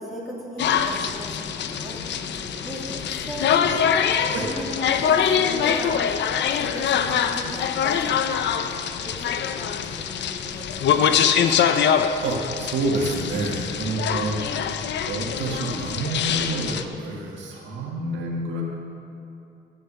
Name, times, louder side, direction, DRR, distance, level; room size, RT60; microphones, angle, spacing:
voice 1, 0.0-1.3 1.7-3.8 4.2-6.1 6.5-8.0 8.5-8.8 9.0-12.0, right 1 dB, ahead, -5 dB, 2.6 m, -37 dB
sound 1, 0.6-16.8, left 8 dB, 65° left, 0.6 m, -24 dB
sound 2, 1.0-12.1, left 4 dB, 40° left, 0.9 m, -44 dB
voice 2, 12.2-14.6 15.1-18.6, right 2 dB, 70° right, -2 dB, 1.7 m, -28 dB
12.0 x 6.6 x 6.8 m, 2.7 s
cardioid pair, 90°, 20 cm